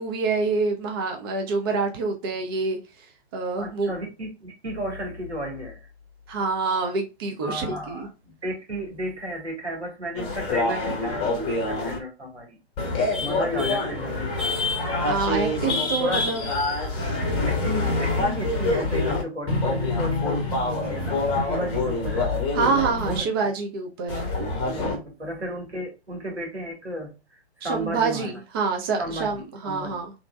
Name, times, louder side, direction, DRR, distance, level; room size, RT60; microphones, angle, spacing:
voice 1, 0.0-2.8 3.3-3.9 6.3-8.1 15.0-16.4 22.5-24.3 24.8-25.0 27.6-30.1, right 4 dB, 20° right, 0.4 m, -26 dB
voice 2, 3.6-5.9 7.4-12.6 13.2-14.6 16.0-16.3 16.9-17.1 17.4-22.3 23.0-23.3 24.7-28.4 29.0-30.0, equal, 85° right, 1.5 m, -33 dB
sound 1, 10.1-12.0 12.8-19.2 19.5-23.2 24.1-25.0, left 2 dB, 15° left, 0.8 m, -26 dB
3.6 x 2.6 x 2.3 m
figure-of-eight pair, 125°, 33 cm